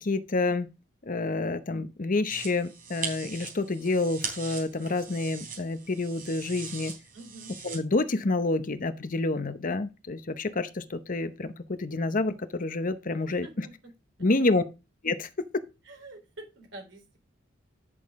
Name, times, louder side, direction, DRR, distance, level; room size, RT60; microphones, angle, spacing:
voice 1, 0.0-0.7 1.0-6.9 7.6-13.7 14.2-14.6 15.0-15.3, left 2 dB, 45° left, 0.8 m, -28 dB
sound 1, 2.3-7.8, right 5 dB, 45° right, 3.8 m, -40 dB
voice 2, 7.1-7.5 13.2-13.7 14.2-14.3 15.8-17.2, right 2 dB, 70° right, 3.8 m, -47 dB
10.0 x 6.5 x 3.6 m
head